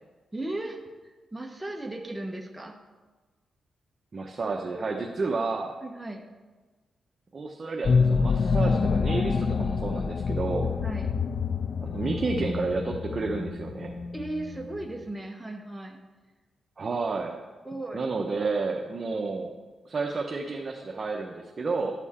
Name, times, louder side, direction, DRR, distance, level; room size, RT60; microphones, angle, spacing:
voice 1, 0.3-0.8 1.0-2.8 5.8-6.2 10.8-11.1 14.1-16.0 17.6-18.1, right 2 dB, 10° right, 1 dB, 0.9 m, -36 dB
voice 2, 4.1-5.8 7.3-10.7 11.8-13.9 16.8-17.4 17.9-19.5 19.8-21.9, right 3 dB, 40° right, 0 dB, 0.8 m, -30 dB
sound 1, 7.8-14.8, left 5 dB, 55° left, 0.3 m, -27 dB
11.0 x 7.2 x 4.3 m, 1.3 s
cardioid pair, 100°, 0 cm